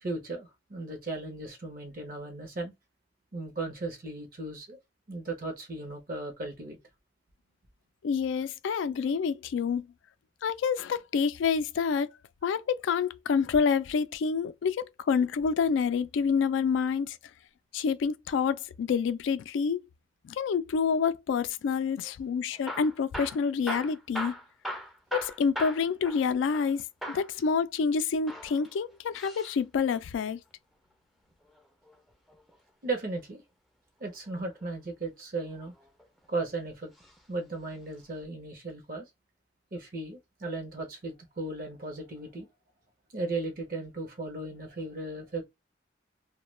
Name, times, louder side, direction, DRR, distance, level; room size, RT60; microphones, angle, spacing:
voice 1, 0.0-2.7 3.3-4.8 5.1-6.8 32.8-33.4 34.0-35.7 36.3-36.9 37.3-39.1 39.7-42.5 43.1-45.4, right 2 dB, 50° right, 0.7 m, -36 dB
voice 2, 8.0-9.9 10.4-12.1 12.4-17.2 17.7-19.8 20.2-24.3 25.1-30.4, left 6 dB, 80° left, 0.3 m, -28 dB
Hammer / Drill, 22.5-26.7 27.0-27.3 28.1-29.6 31.3-32.6 34.3-34.7 35.4-36.3 36.9-37.2 37.5-37.6 38.2-38.3, equal, ahead, 0.4 m, -39 dB
2.2 x 2.1 x 3.1 m
head